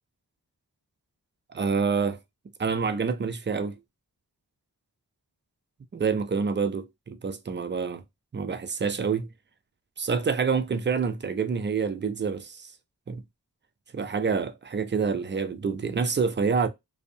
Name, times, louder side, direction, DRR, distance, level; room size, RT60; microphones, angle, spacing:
voice 1, 1.5-2.2 2.6-3.7 5.9-8.0 8.3-9.3 10.0-12.7 13.1-13.2 13.9-16.7, right 5 dB, 30° right, 0.4 m, -27 dB
2.6 x 2.1 x 2.5 m
wide cardioid pair, 80°, 37 cm